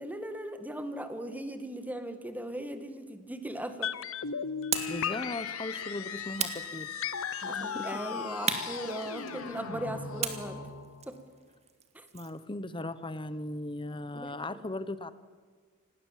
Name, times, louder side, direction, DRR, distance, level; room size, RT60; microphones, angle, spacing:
voice 1, 0.0-3.9 7.4-10.7 11.1-11.2 11.9-12.1 14.1-14.6, right 1 dB, 10° right, 8 dB, 1.8 m, -38 dB
sound 1, 3.8-9.9 10.1-10.2, left 7 dB, 65° left, 0.8 m, -37 dB
sound 2, 4.7-11.2, left 5 dB, 85° left, 1.8 m, -40 dB
sound 3, 4.7-5.1 6.4-7.3 8.5-9.6 10.2-12.4, right 6 dB, 30° right, 2.0 m, -36 dB
voice 2, 4.9-6.9 7.4-8.0 12.1-15.1, left 2 dB, 25° left, 14 dB, 1.0 m, -38 dB
27.5 x 19.0 x 7.5 m, 1.5 s
head